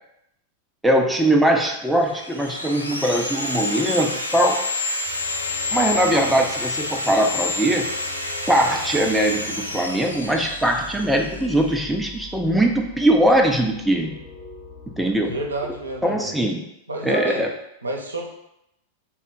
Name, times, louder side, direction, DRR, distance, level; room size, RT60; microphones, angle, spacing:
voice 1, 0.8-4.6 5.7-7.9 8.5-14.2 15.0-15.3 16.0-16.6 17.0-17.5, right 1 dB, 5° right, 2 dB, 0.4 m, -21 dB
Sawing, 1.9-11.7, left 2 dB, 85° left, 0.4 m, -29 dB
sound 1, 5.0-16.0, left 2 dB, 40° left, 0.9 m, -42 dB
voice 2, 15.3-16.3 16.9-17.4 17.8-18.3, right 2 dB, 75° right, 0 dB, 0.6 m, -29 dB
3.6 x 2.1 x 4.0 m, 0.81 s
figure-of-eight pair, 90°, 0 cm